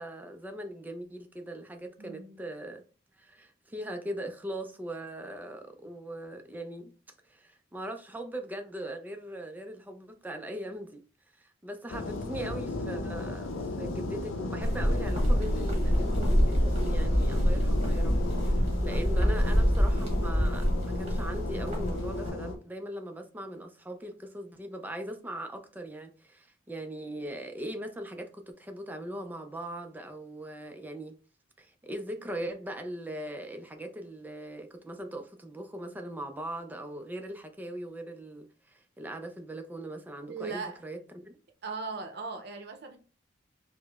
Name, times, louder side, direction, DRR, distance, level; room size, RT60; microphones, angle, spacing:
voice 1, 0.0-2.8 3.2-6.9 7.3-11.0 11.3-31.2 31.6-41.4, right 1 dB, 10° right, 0.3 m, -40 dB
voice 2, 2.0-2.5 15.9-16.3 40.3-40.8 41.6-43.0, right 4 dB, 55° right, 0.6 m, -39 dB
sound 1, 11.9-22.6, left 2 dB, 80° left, 0.5 m, -35 dB
sound 2, 14.6-22.3, equal, 35° right, 1.0 m, -26 dB
4.6 x 2.0 x 2.2 m
head